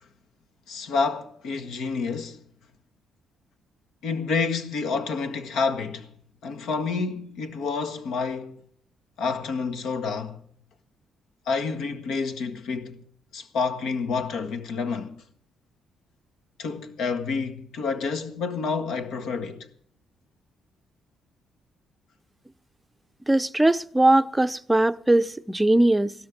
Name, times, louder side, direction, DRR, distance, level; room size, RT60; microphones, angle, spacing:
voice 1, 0.7-2.4 4.0-6.1 6.4-8.6 9.2-10.4 11.5-13.0 13.3-15.2 16.6-19.7, left 4 dB, 80° left, 1.7 m, -29 dB
voice 2, 23.3-26.1, right 1 dB, 10° right, 0.6 m, -20 dB
16.5 x 13.0 x 5.2 m
cardioid pair, 90°, 0 cm